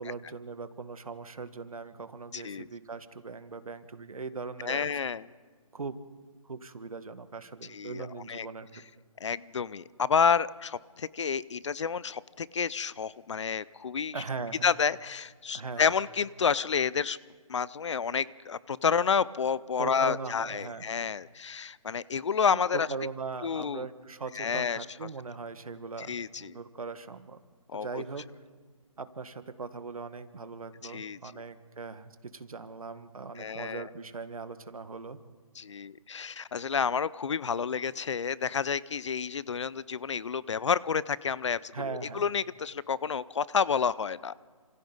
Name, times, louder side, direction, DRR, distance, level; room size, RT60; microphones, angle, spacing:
voice 1, 0.0-4.9 5.7-6.0 6.4-8.8 14.1-14.7 15.5-15.9 19.8-20.9 22.7-27.4 27.7-28.2 29.0-35.2 41.7-42.2, right 4 dB, 75° right, 11 dB, 1.7 m, -40 dB
voice 2, 2.3-2.7 4.6-5.2 7.7-8.5 9.2-14.2 14.6-17.2 17.5-22.9 23.4-23.9 24.3-25.1 26.0-26.5 27.7-28.0 30.8-31.2 33.4-33.9 35.6-44.3, left 6 dB, 55° left, 20 dB, 0.6 m, -30 dB
29.0 x 27.0 x 4.0 m, 1.5 s
figure-of-eight pair, 155°, 18 cm